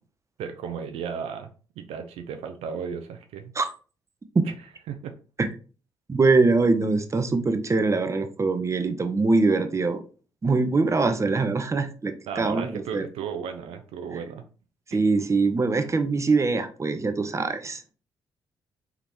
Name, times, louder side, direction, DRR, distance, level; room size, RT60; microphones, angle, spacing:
voice 1, 0.4-1.5 1.8-3.5 4.4-4.5 4.9-5.2 12.3-14.4 14.9-15.0, right 7 dB, 70° right, 0.5 m, -34 dB
voice 2, 6.1-10.0 10.4-13.1 14.9-17.8, right 3 dB, 30° right, 0.7 m, -23 dB
3.8 x 3.6 x 3.0 m
hypercardioid pair, 45°, 11 cm